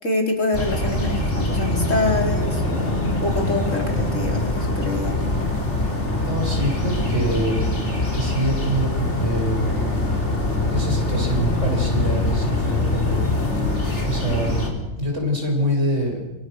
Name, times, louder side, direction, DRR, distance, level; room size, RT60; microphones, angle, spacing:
voice 1, 0.0-5.3, left 2 dB, 80° left, 1 dB, 4.9 m, -26 dB
sound 1, 0.5-14.7, left 2 dB, 60° left, 4.5 m, -23 dB
voice 2, 6.2-7.6 8.1-9.6 10.7-13.3 14.0-14.6 15.0-16.2, right 1 dB, 70° right, 1 dB, 7.0 m, -25 dB
27.0 x 25.5 x 6.5 m, 1.1 s
omnidirectional pair, 1.3 m